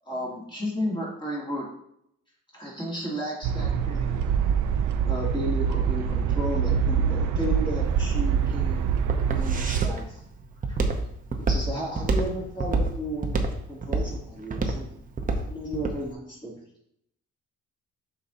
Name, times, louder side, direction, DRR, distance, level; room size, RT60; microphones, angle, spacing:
voice 1, 0.1-1.7 2.5-4.3 5.1-8.9 9.3-10.2 10.7-10.8 11.4-14.9 15.4-16.6, equal, 15° left, -5 dB, 2.3 m, -33 dB
sound 1, 3.4-9.9, right 7 dB, 65° right, 0.6 m, -25 dB
Walk footsteps, 7.9-16.0, right 3 dB, 25° right, 0.7 m, -27 dB
6.9 x 5.5 x 2.7 m, 0.73 s
cardioid pair, 130°, 32 cm